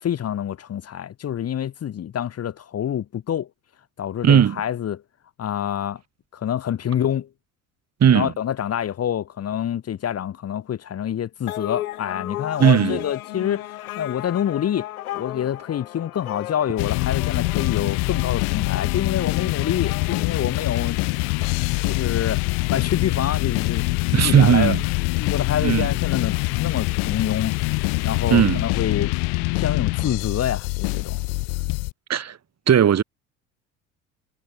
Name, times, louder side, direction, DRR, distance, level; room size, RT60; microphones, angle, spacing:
voice 1, 0.0-3.5 4.0-5.0 5.4-6.0 6.3-7.3 8.1-21.0 21.8-22.4 22.7-24.8 25.1-27.7 28.0-29.1 29.5-31.2, left 10 dB, 35° left, 1.8 m, -27 dB
voice 2, 4.2-4.6 8.0-8.3 12.6-13.1 24.1-24.8 25.6-25.9 28.3-28.6 32.1-32.4 32.7-33.0, right 9 dB, 35° right, 5.3 m, -17 dB
sound 1, 11.5-21.3, left 15 dB, 75° left, 2.4 m, -35 dB
sound 2, 16.8-31.9, left 32 dB, 60° left, 1.3 m, -24 dB
hypercardioid pair, 70°, 43 cm